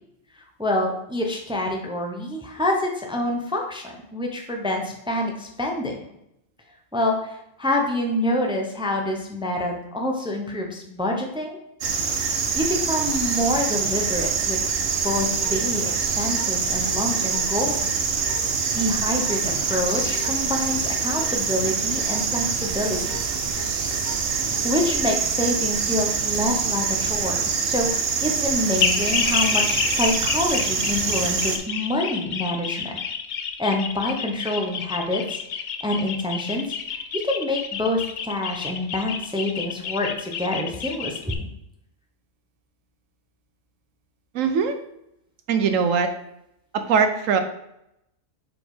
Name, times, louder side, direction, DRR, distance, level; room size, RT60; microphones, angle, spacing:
voice 1, 0.6-6.0 6.9-11.6 12.1-14.6 15.0-18.0 18.7-23.2 24.6-33.0 33.6-35.4 35.8-37.0 37.2-41.5, left 1 dB, 5° right, 2 dB, 0.5 m, -27 dB
sound 1, 11.8-31.6, right 5 dB, 60° right, 0.8 m, -25 dB
sound 2, 15.1-24.7, left 2 dB, 25° left, 0.8 m, -41 dB
sound 3, 28.8-41.3, left 7 dB, 65° left, 0.4 m, -29 dB
voice 2, 44.3-44.8 45.5-46.1 46.7-47.4, right 6 dB, 80° right, 7 dB, 1.1 m, -21 dB
4.8 x 4.1 x 5.0 m, 0.82 s
omnidirectional pair, 1.4 m